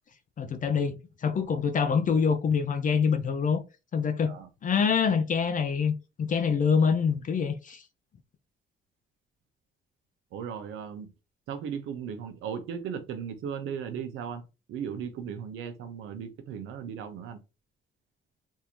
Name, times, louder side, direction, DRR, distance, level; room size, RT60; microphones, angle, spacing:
voice 1, 0.4-3.6 3.9-4.3 4.6-7.8, left 6 dB, 40° left, 0.5 m, -25 dB
voice 2, 10.3-11.1 11.5-14.4 14.7-17.4, right 7 dB, 90° right, 0.7 m, -36 dB
3.6 x 2.6 x 3.0 m
cardioid pair, 90°, 20 cm